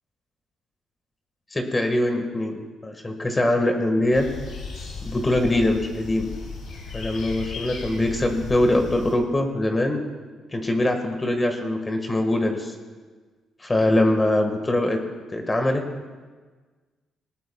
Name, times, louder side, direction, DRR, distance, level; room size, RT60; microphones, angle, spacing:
voice 1, 1.5-4.3 5.0-6.3 6.9-10.0 10.5-12.7 13.6-15.0 15.3-15.8, left 1 dB, 20° left, 4 dB, 1.6 m, -23 dB
sound 1, 4.1-9.1, left 4 dB, 80° left, 3.8 m, -36 dB
19.0 x 18.5 x 2.3 m, 1.4 s
cardioid pair, 100°, 0 cm